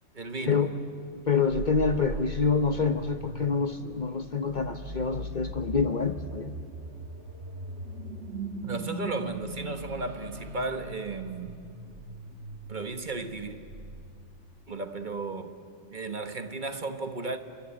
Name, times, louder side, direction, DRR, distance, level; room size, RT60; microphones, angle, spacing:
voice 1, 0.1-0.7 8.6-11.6 12.7-13.6 14.7-15.6 15.9-17.4, right 3 dB, 40° right, 1.4 m, -34 dB
voice 2, 1.1-6.5, left 5 dB, 40° left, 1.0 m, -27 dB
sound 1, 1.5-14.8, right 2 dB, 65° right, 1.7 m, -40 dB
29.0 x 23.5 x 8.7 m
omnidirectional pair, 1.3 m